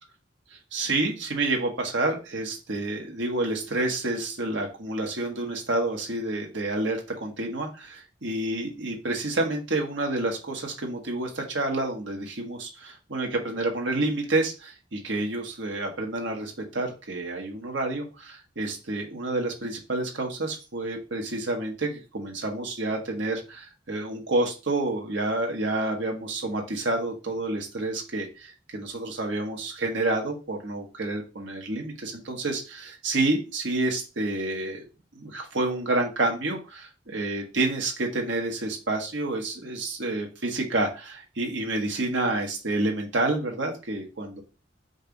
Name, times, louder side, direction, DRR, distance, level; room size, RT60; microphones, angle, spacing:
voice 1, 0.7-34.9 35.1-44.4, right 2 dB, 75° right, 1 dB, 1.2 m, -29 dB
5.3 x 2.4 x 3.9 m, 0.31 s
head